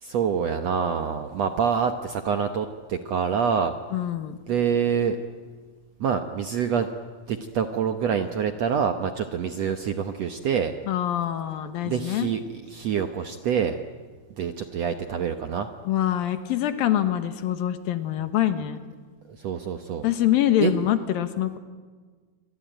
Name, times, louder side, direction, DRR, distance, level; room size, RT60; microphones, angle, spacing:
voice 1, 0.0-3.7 4.5-5.2 6.0-6.9 7.3-10.7 11.8-12.4 12.7-13.8 14.4-15.7 19.4-20.1 20.6-20.7, right 7 dB, 65° right, 7 dB, 1.7 m, -26 dB
voice 2, 3.9-4.4 10.9-12.3 15.9-18.8 20.0-21.6, left 12 dB, 75° left, 10 dB, 3.0 m, -25 dB
27.0 x 24.0 x 9.1 m, 1.5 s
omnidirectional pair, 4.3 m